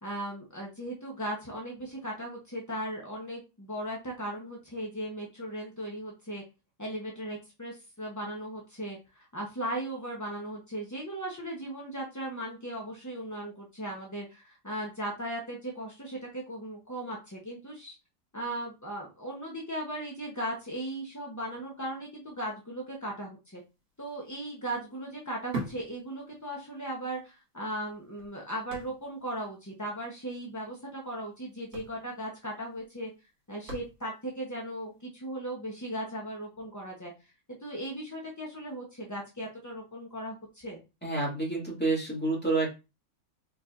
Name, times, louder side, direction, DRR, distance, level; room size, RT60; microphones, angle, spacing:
voice 1, 0.0-6.4 6.8-9.0 9.3-17.9 18.3-23.6 24.0-33.1 33.5-37.1 37.6-40.8, right 1 dB, 25° left, -2 dB, 0.3 m, -37 dB
sound 1, 23.8-23.9 24.2-26.8 27.1-27.2 27.8-29.4 29.6-29.7 30.0-30.2 31.1-31.2 31.5-34.4 34.9-35.0, right 2 dB, 50° right, 2.4 m, -42 dB
voice 2, 41.0-42.8, right 3 dB, 5° left, -4 dB, 1.8 m, -29 dB
4.4 x 4.4 x 2.5 m, 0.27 s
omnidirectional pair, 2.0 m